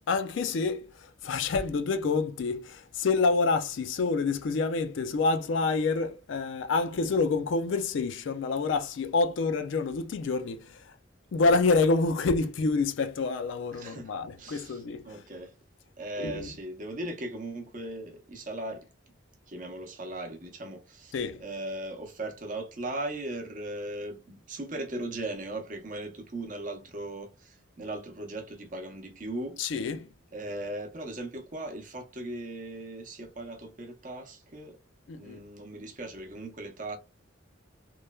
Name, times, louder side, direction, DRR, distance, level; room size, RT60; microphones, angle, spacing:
voice 1, 0.0-10.9 11.3-15.2 16.2-16.5 21.1-21.4 29.6-30.1 35.1-35.4, left 4 dB, 65° left, 0.4 m, -27 dB
voice 2, 13.7-14.1 14.4-15.5 16.0-18.9 19.5-21.1 21.4-29.6 30.3-34.8 35.1-37.0, right 1 dB, 40° right, 0.7 m, -38 dB
3.0 x 2.1 x 2.2 m
head